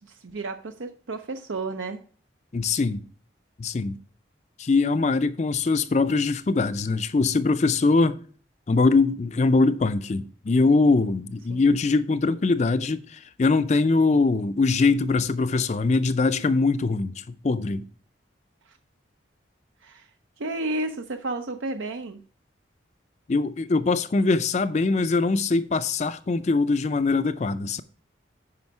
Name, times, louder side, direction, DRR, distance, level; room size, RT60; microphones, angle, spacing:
voice 1, 0.1-2.0 11.5-11.6 19.8-20.1 20.4-22.2, right 2 dB, 80° right, 0.6 m, -32 dB
voice 2, 2.5-3.0 3.6-4.0 4.6-8.2 8.7-17.9 23.3-27.8, left 3 dB, 35° left, 0.4 m, -22 dB
9.6 x 5.1 x 4.6 m
head